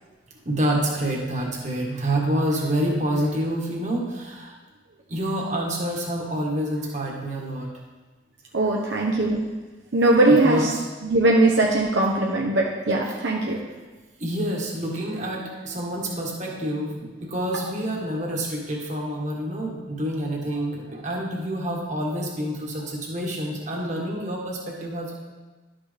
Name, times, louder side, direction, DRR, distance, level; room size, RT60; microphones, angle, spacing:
voice 1, 0.4-4.5 5.1-7.7 8.6-8.7 10.3-10.9 13.1-13.2 14.2-25.1, right 1 dB, 40° right, -2 dB, 1.7 m, -27 dB
voice 2, 8.5-9.4 9.9-10.6 11.0-13.6, right 2 dB, 70° right, -2 dB, 0.9 m, -20 dB
12.0 x 6.0 x 3.5 m, 1.2 s
head